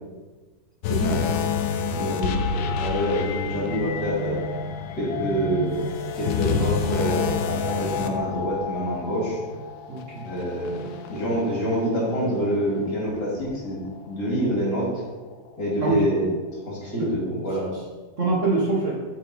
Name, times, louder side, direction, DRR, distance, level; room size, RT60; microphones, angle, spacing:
sound 1, 0.8-12.3 12.7-12.9 13.5-13.6, left 6 dB, 80° left, 1.4 m, -29 dB
voice 1, 0.9-1.4 7.9-8.0 9.9-10.3 15.8-16.0 17.0-17.1 18.2-18.9, right 3 dB, 40° right, -4 dB, 1.6 m, -25 dB
voice 2, 1.9-4.4 5.0-5.7 6.2-9.4 10.2-10.8 11.1-13.8 14.1-14.9 15.6-16.2 16.7-17.7, equal, 55° left, -5 dB, 3.4 m, -26 dB
8.3 x 6.4 x 4.4 m, 1.3 s
omnidirectional pair, 2.2 m